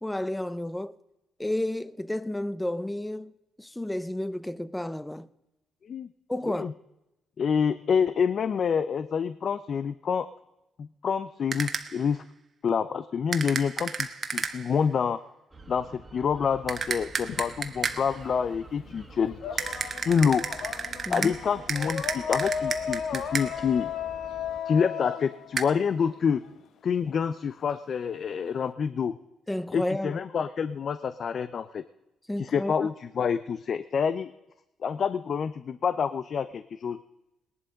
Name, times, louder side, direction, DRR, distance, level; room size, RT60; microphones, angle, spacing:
voice 1, 0.0-1.0 1.4-3.3 3.6-5.3 6.3-6.7 21.1-21.3 29.5-30.2 32.3-32.9, left 1 dB, 10° left, 0.7 m, -31 dB
voice 2, 7.4-10.3 10.8-12.2 12.6-14.1 14.3-15.2 15.7-20.4 21.1-23.9 24.7-26.4 26.8-29.2 29.7-31.8 32.4-34.3 34.8-37.0, left 6 dB, 50° left, 0.6 m, -27 dB
sound 1, 11.5-12.1 13.3-14.8 16.7-18.2 19.6-23.7 25.6-25.7, right 5 dB, 45° right, 1.3 m, -33 dB
sound 2, 15.5-24.6, right 3 dB, 20° right, 1.9 m, -49 dB
sound 3, 17.2-18.4 18.7-26.5, left 7 dB, 70° left, 0.9 m, -35 dB
19.0 x 11.0 x 5.2 m
cardioid pair, 90°, 0 cm